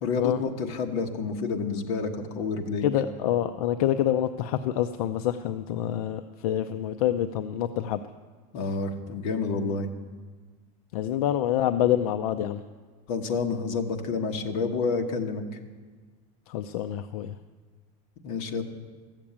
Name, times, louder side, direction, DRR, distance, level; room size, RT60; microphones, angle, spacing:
voice 1, 0.0-2.8 8.5-9.9 13.1-15.4 18.2-18.6, left 4 dB, 50° left, 3 dB, 1.3 m, -29 dB
voice 2, 2.8-8.0 10.9-12.6 16.5-17.3, left 11 dB, 75° left, 9 dB, 0.5 m, -26 dB
14.0 x 7.4 x 8.7 m, 1.4 s
supercardioid pair, 180°, 19 cm